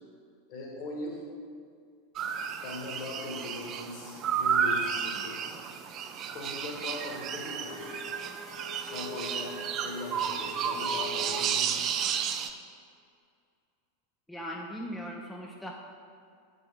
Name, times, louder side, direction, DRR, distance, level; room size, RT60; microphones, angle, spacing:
voice 1, 0.5-1.2 2.6-5.4 6.3-8.0 8.9-9.5 9.8-11.9, left 2 dB, 45° left, -1 dB, 1.8 m, -40 dB
sound 1, 2.2-12.5, right 7 dB, 35° right, 0.5 m, -32 dB
Bowed string instrument, 7.4-11.5, left 1 dB, 65° left, 1.7 m, -44 dB
voice 2, 14.3-15.7, equal, 5° left, -1 dB, 0.7 m, -39 dB
8.0 x 6.2 x 3.7 m, 2.3 s
figure-of-eight pair, 85°, 0 cm